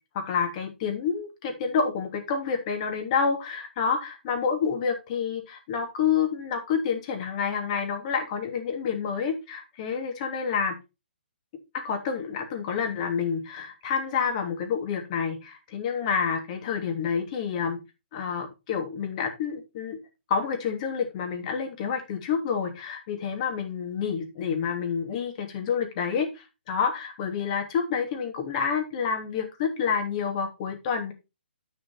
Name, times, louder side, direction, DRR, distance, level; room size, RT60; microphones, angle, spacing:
voice 1, 0.1-10.8 11.7-17.8 18.1-20.0 20.3-31.1, left 6 dB, 40° left, 4 dB, 2.7 m, -28 dB
10.5 x 5.0 x 4.4 m, 0.26 s
hypercardioid pair, 145°, 6 cm